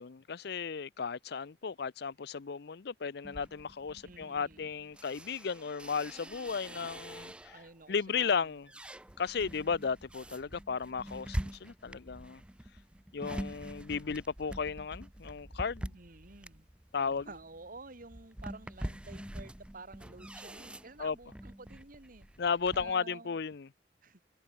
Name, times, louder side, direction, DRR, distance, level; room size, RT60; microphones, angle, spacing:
voice 1, 0.0-7.6 7.9-8.7 9.2-12.4 13.1-16.0 16.9-17.3 21.0-21.2 22.4-23.7, left 5 dB, 65° left, 0.6 m, -35 dB
sound 1, 3.2-7.7 8.2-22.9, right 1 dB, 5° right, 0.5 m, -45 dB
voice 2, 4.0-4.7 7.5-8.5 15.9-16.7 17.0-22.3 22.7-23.4 24.0-24.2, right 3 dB, 50° right, 2.1 m, -51 dB
open air
head